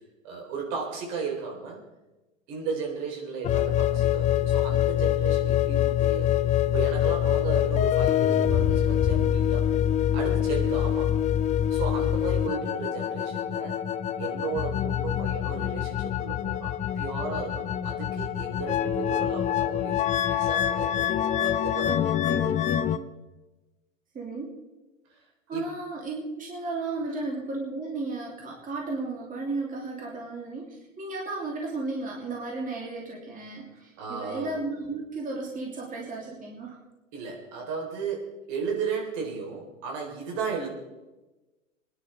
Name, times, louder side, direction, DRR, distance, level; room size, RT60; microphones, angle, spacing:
voice 1, 0.2-1.8 2.5-9.7 10.1-11.2 11.6-13.8 14.2-20.0 20.3-22.6 25.1-25.2 25.5-25.7 27.1-27.2 34.0-34.5 37.1-40.7, right 5 dB, 50° right, 1 dB, 3.9 m, -35 dB
sound 1, 3.4-23.0, left 10 dB, 20° left, 0.5 m, -25 dB
voice 2, 24.1-24.5 25.5-36.8, right 3 dB, 20° right, -2 dB, 3.0 m, -34 dB
25.5 x 10.5 x 3.4 m, 1.1 s
figure-of-eight pair, 95°, 38 cm